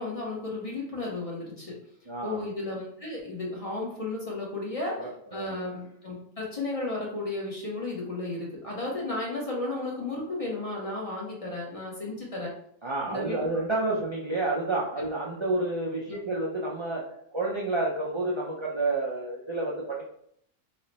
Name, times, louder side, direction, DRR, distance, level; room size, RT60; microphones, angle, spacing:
voice 1, 0.0-1.8 2.2-12.5 13.1-13.4 16.1-16.2, left 2 dB, 35° left, -4 dB, 0.7 m, -34 dB
voice 2, 2.1-2.4 5.0-5.6 12.8-17.0 17.3-20.0, right 2 dB, 45° right, -5 dB, 0.3 m, -30 dB
3.2 x 2.1 x 3.9 m, 0.68 s
omnidirectional pair, 1.4 m